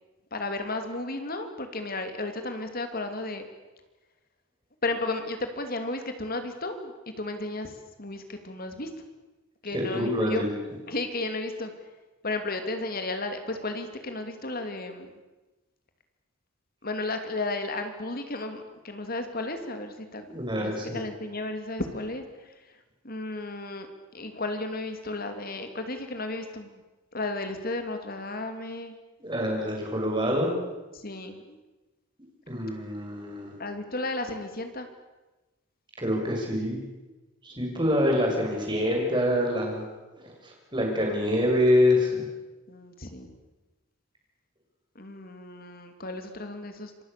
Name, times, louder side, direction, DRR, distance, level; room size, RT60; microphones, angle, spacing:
voice 1, 0.3-3.4 4.8-8.9 9.6-10.5 10.9-11.7 12.2-15.1 16.8-20.2 20.5-22.2 23.0-23.9 24.1-26.8 27.1-28.9 30.9-31.6 33.6-34.9 42.7-43.3 44.9-47.0, left 2 dB, 45° left, 7 dB, 2.9 m, -33 dB
voice 2, 9.7-10.5 20.3-21.0 29.2-30.5 32.5-33.5 36.0-36.8 37.4-39.8 40.1-42.2, left 1 dB, 20° right, 0 dB, 6.7 m, -26 dB
27.0 x 24.0 x 6.9 m, 1.1 s
head